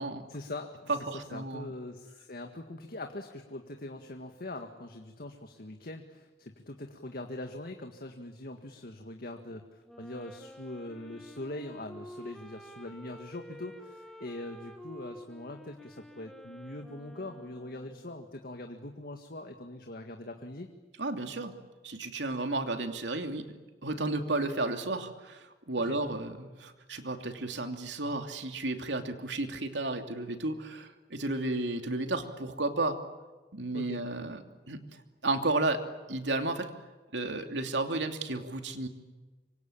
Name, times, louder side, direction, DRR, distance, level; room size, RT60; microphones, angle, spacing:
voice 1, 0.3-20.7 25.8-26.0 33.7-34.0, left 1 dB, 55° left, 5 dB, 1.9 m, -42 dB
voice 2, 0.9-1.7 21.0-21.5 21.8-23.4 23.8-33.0 33.5-34.4 34.7-35.8 36.1-36.7 37.1-38.9, right 2 dB, 90° right, 6 dB, 2.9 m, -33 dB
Wind instrument woodwind instrument, 9.8-18.2, equal, ahead, 1.7 m, -50 dB
26.5 x 24.5 x 8.8 m, 1.2 s
head